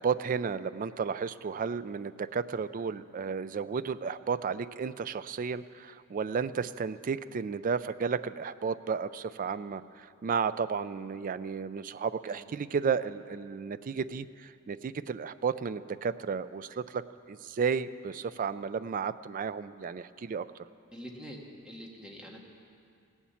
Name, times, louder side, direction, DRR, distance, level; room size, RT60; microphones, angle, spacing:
voice 1, 0.0-17.0 17.3-20.5, right 6 dB, 40° right, 14 dB, 0.4 m, -33 dB
voice 2, 20.9-22.4, equal, 5° right, -2 dB, 1.6 m, -45 dB
17.5 x 7.2 x 8.4 m, 2.5 s
head